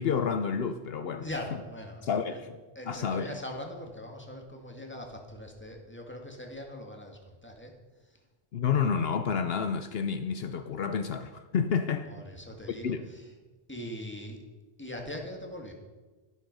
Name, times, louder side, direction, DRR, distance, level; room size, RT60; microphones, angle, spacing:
voice 1, 0.0-1.3 2.0-2.5 2.9-3.3 8.5-12.1 12.8-13.1, left 6 dB, 70° left, 0.9 m, -29 dB
voice 2, 1.2-2.4 2.8-7.7 8.0-8.2 12.1-13.3 13.7-14.4 14.8-15.7, left 1 dB, 10° left, 2.0 m, -41 dB
12.5 x 12.0 x 5.4 m
omnidirectional pair, 1.1 m